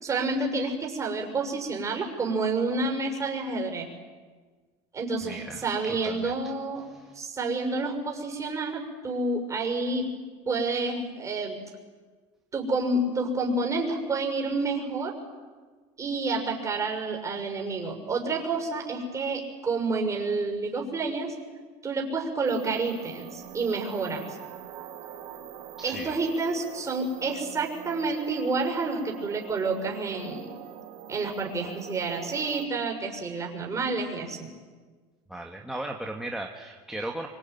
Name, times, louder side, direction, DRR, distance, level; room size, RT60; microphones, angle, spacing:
voice 1, 0.0-3.9 4.9-6.8 7.1-10.1 10.5-11.6 12.5-15.1 16.0-21.3 21.8-24.2 25.8-30.5 31.1-34.5, right 3 dB, 20° right, 2 dB, 6.3 m, -29 dB
voice 2, 5.2-6.3 6.9-7.1 25.8-26.2 35.3-37.3, right 1 dB, 5° right, 1 dB, 2.0 m, -37 dB
sound 1, 22.4-32.6, right 10 dB, 65° right, 3.4 m, -43 dB
25.5 x 24.0 x 9.4 m, 1.4 s
supercardioid pair, 120°, 14 cm